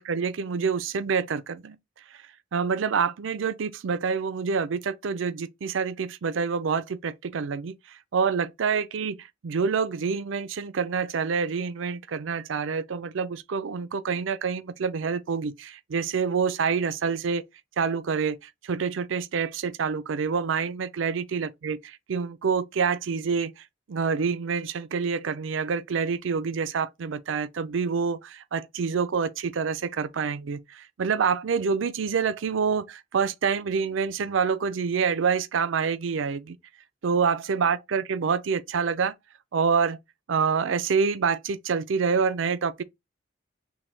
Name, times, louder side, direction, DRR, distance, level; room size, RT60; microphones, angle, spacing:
voice 1, 0.0-1.8 2.1-2.2 2.5-17.4 17.8-36.6 37.0-39.1 39.5-40.0 40.3-42.8, right 5 dB, 75° right, 0.5 m, -27 dB
6.1 x 2.2 x 3.2 m
head